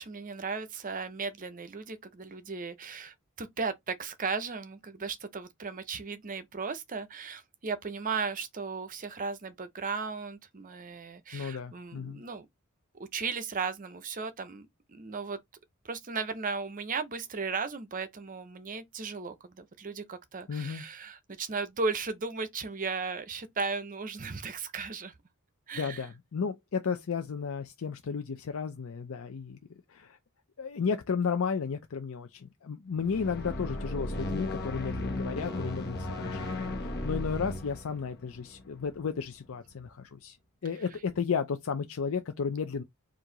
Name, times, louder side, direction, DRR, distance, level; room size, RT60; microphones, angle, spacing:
voice 1, 0.0-12.5 13.0-15.4 15.8-25.2 25.7-26.1, right 4 dB, 35° right, 0.6 m, -36 dB
voice 2, 11.3-12.2 20.5-20.8 25.8-29.6 29.9-30.2 30.6-40.4 40.6-42.8, left 6 dB, 65° left, 0.5 m, -33 dB
sound 1, 32.9-39.3, left 2 dB, 50° left, 1.1 m, -35 dB
4.5 x 2.5 x 3.8 m
head